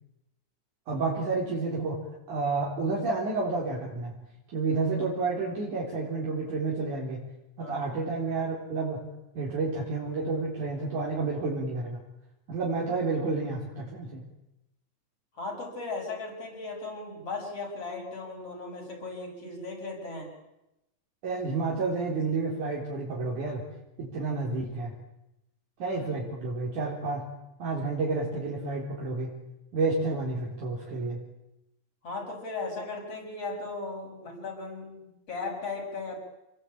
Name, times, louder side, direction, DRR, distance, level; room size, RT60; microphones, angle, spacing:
voice 1, 0.9-4.2 4.5-7.3 7.6-9.1 9.4-12.0 12.5-14.2 21.2-23.7 24.0-24.9 25.8-27.3 27.6-29.4 29.7-31.2, right 3 dB, 85° right, -3 dB, 5.5 m, -30 dB
voice 2, 15.3-20.3 25.9-26.0 32.0-36.2, left 3 dB, 50° left, 1 dB, 7.8 m, -37 dB
28.0 x 21.0 x 8.9 m, 0.90 s
omnidirectional pair, 3.4 m